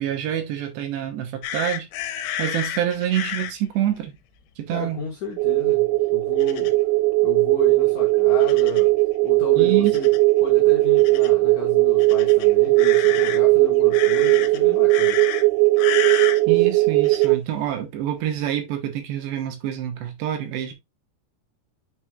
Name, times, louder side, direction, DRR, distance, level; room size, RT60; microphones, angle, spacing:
voice 1, 0.0-1.9 2.4-4.1 4.6-5.0 9.6-10.0 16.5-20.7, right 11 dB, 75° right, 3.1 m, -26 dB
sound 1, 1.4-3.5 6.4-6.7 8.4-8.9 9.9-10.2 11.0-11.3 12.0-13.4 13.9-14.6 14.9-15.4 15.8-16.4 17.0-17.3, left 10 dB, 90° left, 3.1 m, -30 dB
voice 2, 4.7-6.8 7.2-8.9 9.2-10.1 10.4-15.2, left 6 dB, 70° left, 1.8 m, -34 dB
sound 2, 5.4-17.4, right 22 dB, 90° right, 3.1 m, -18 dB
8.7 x 4.8 x 2.3 m
omnidirectional pair, 5.3 m